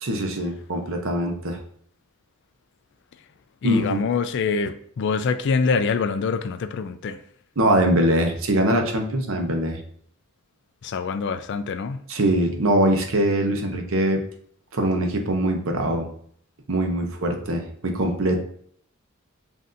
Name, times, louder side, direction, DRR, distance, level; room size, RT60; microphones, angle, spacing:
voice 1, 0.0-1.6 3.6-4.0 7.6-9.8 12.1-14.2 14.7-16.1 16.7-18.4, right 1 dB, 60° right, 3 dB, 0.7 m, -22 dB
voice 2, 3.6-7.2 10.8-12.0, left 5 dB, 55° left, 11 dB, 0.3 m, -25 dB
7.5 x 2.7 x 2.6 m, 0.62 s
head